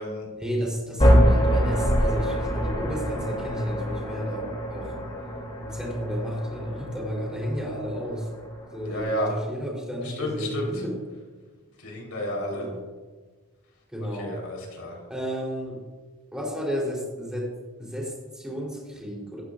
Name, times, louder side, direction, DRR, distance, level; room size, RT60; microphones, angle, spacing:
voice 1, 0.4-5.0 5.6-8.3 8.7-11.0 12.5-12.8 13.9-14.4 15.1-15.9 16.3-19.4, equal, 5° right, -4 dB, 3.7 m, -32 dB
sound 1, 1.0-9.0, equal, 25° left, 2.9 m, -25 dB
voice 2, 8.8-9.3 10.0-10.8 11.8-12.7 14.2-15.0, equal, 85° left, -1 dB, 4.2 m, -31 dB
17.5 x 14.5 x 2.6 m, 1.4 s
head